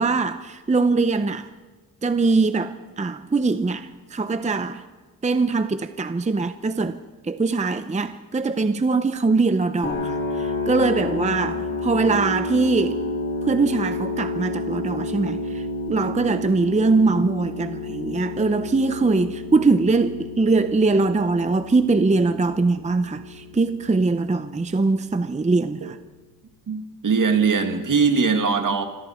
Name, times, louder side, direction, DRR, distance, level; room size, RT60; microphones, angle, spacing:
voice 1, 0.0-1.5 2.0-4.8 5.2-13.0 13.5-26.0, right 3 dB, 20° right, 0.6 m, -22 dB
sound 1, 9.8-25.8, left 3 dB, 35° left, 2.8 m, -31 dB
voice 2, 26.7-28.8, right 5 dB, 60° right, 2.0 m, -21 dB
27.5 x 25.0 x 4.3 m
wide cardioid pair, 155°, 36 cm